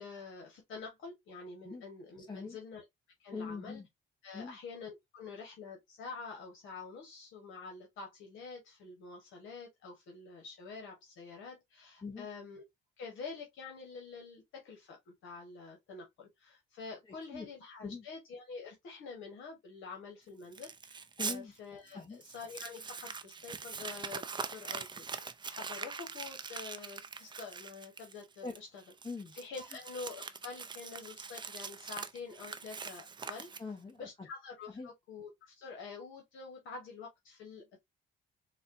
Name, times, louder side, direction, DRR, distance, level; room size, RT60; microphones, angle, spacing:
voice 1, 0.0-2.8 3.2-3.8 4.2-12.6 13.0-28.8 29.4-33.5 34.0-37.8, left 4 dB, 80° left, 1.0 m, -47 dB
voice 2, 2.2-2.6 3.3-3.9 4.3-4.6 12.0-12.3 17.0-17.5 17.8-18.0 21.2-21.5 21.9-22.2 28.4-28.6 29.0-29.3 33.6-34.3 34.7-34.9, left 4 dB, 25° left, 0.7 m, -42 dB
Crumpling crinkling, 20.5-21.4 21.9-22.0 22.2-33.9, right 5 dB, 25° right, 0.4 m, -43 dB
4.1 x 2.1 x 2.4 m
cardioid pair, 90°, 20 cm